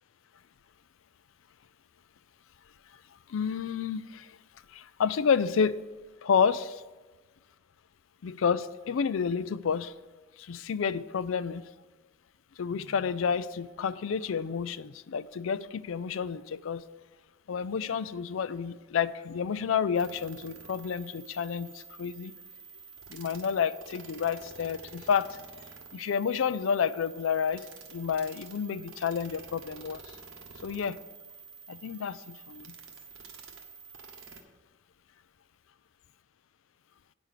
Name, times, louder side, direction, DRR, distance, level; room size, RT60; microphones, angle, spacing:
voice 1, 3.3-4.3 4.7-5.8 6.2-6.8 8.2-9.9 10.4-11.6 12.6-16.8 17.5-22.3 23.1-25.4 25.9-27.6 27.9-30.0 30.6-31.0 31.7-32.7, left 6 dB, 80° left, 16 dB, 0.4 m, -30 dB
sound 1, 20.0-34.4, right 5 dB, 85° right, 1.2 m, -49 dB
9.5 x 6.1 x 6.6 m, 1.2 s
head